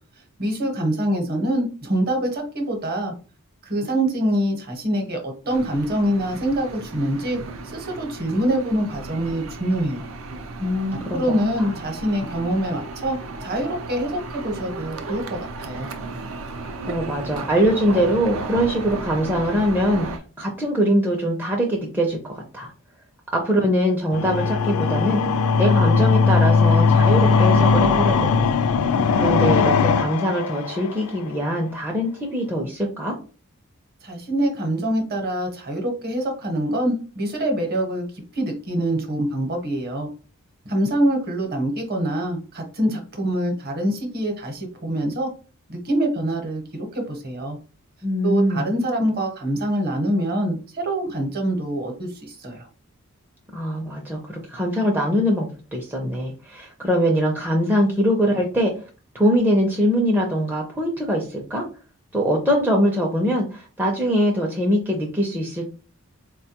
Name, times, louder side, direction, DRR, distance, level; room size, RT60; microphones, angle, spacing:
voice 1, 0.4-3.1 3.6-7.4 7.7-10.1 10.9-15.9 34.0-40.1 40.6-45.3 45.7-47.6 48.2-52.7, right 1 dB, 45° right, 3 dB, 0.9 m, -25 dB
sound 1, 5.5-20.2, right 3 dB, 65° right, 0.5 m, -35 dB
voice 2, 10.6-11.2 11.6-11.7 16.9-22.7 23.3-25.2 25.6-28.5 29.2-33.2 48.0-48.7 53.5-58.7 59.1-61.6 62.1-65.7, equal, 10° right, -1 dB, 0.4 m, -22 dB
sound 2, 24.1-31.1, left 5 dB, 85° left, 0.4 m, -18 dB
4.2 x 2.2 x 2.8 m, 0.36 s
head